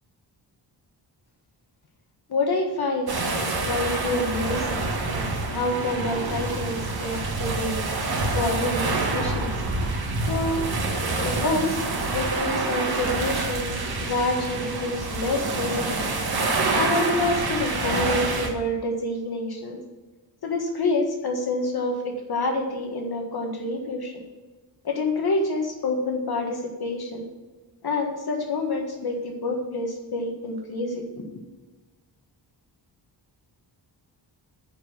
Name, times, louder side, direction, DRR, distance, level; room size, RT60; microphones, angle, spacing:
voice 1, 2.3-7.8 8.3-9.5 10.3-10.7 11.2-11.8 12.1-13.7 14.0-16.0 16.7-19.8 20.4-24.1 24.8-27.3 27.8-31.3, left 2 dB, 55° left, 1 dB, 1.5 m, -27 dB
sound 1, 3.1-18.5, right 3 dB, 55° right, 1.8 m, -27 dB
10.0 x 4.9 x 7.2 m, 1.2 s
wide cardioid pair, 145°, 44 cm